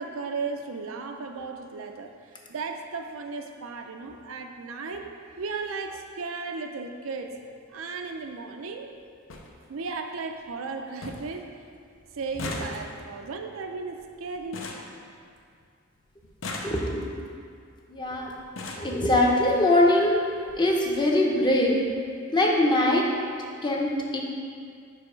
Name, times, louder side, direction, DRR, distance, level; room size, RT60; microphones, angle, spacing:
voice 1, 0.0-7.3 7.7-8.9 9.7-11.5 12.1-14.7, right 4 dB, 90° right, 4 dB, 0.5 m, -35 dB
sound 1, 7.2-7.4 8.6-8.7 8.9-9.0 9.3-9.5 9.9-10.4 10.7-10.8 11.0-11.4 11.7-15.7 16.2-17.2 18.0-18.1 18.4-19.0 19.9-20.0 20.4-20.5 20.8-20.9, left 2 dB, 70° left, 0.7 m, -39 dB
voice 2, 16.6-17.1 17.9-18.3 18.8-20.2 20.6-21.7 22.3-23.0 23.6-24.2, left 1 dB, 25° left, -1 dB, 0.7 m, -22 dB
4.9 x 4.6 x 5.0 m, 2.2 s
head